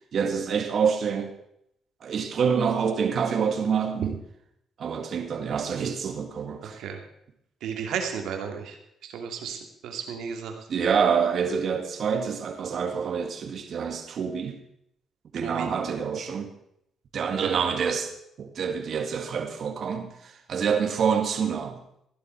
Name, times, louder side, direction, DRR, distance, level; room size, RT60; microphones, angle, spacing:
voice 1, 0.1-1.3 2.0-4.2 4.8-6.8 10.7-14.6 15.3-16.5 17.1-18.1 18.4-21.8, right 6 dB, 55° right, 5 dB, 2.1 m, -27 dB
voice 2, 7.6-8.8 9.0-10.6 15.4-15.7 17.4-17.5, right 7 dB, 80° right, 5 dB, 2.3 m, -33 dB
15.0 x 11.5 x 4.5 m, 0.75 s
cardioid pair, 90°, 0 cm